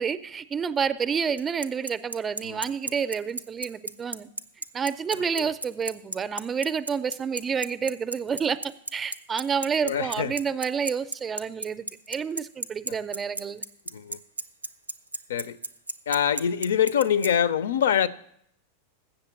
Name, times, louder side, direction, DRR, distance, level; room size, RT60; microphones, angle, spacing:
voice 1, 0.0-4.3 4.7-8.6 8.9-13.6, right 6 dB, 20° right, 0.5 m, -29 dB
Bicycle, 1.4-17.3, right 2 dB, 85° right, 0.4 m, -32 dB
voice 2, 5.2-5.5 9.8-10.4 12.9-13.0 13.9-14.2 15.3-15.6 16.1-18.1, left 8 dB, 60° left, 0.4 m, -25 dB
7.9 x 6.7 x 8.2 m
figure-of-eight pair, 90°, 0 cm